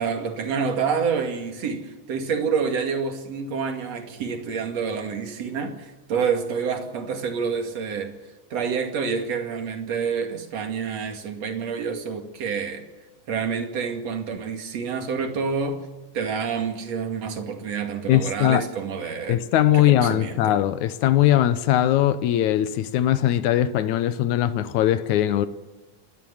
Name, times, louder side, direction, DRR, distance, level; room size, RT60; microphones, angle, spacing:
voice 1, 0.0-8.2 8.5-12.9 13.3-15.8 16.1-19.4 19.7-20.5, right 6 dB, 50° right, 3.2 m, -28 dB
voice 2, 18.1-18.6 19.3-25.5, left 12 dB, 70° left, 2.0 m, -20 dB
29.5 x 13.0 x 7.2 m
omnidirectional pair, 4.0 m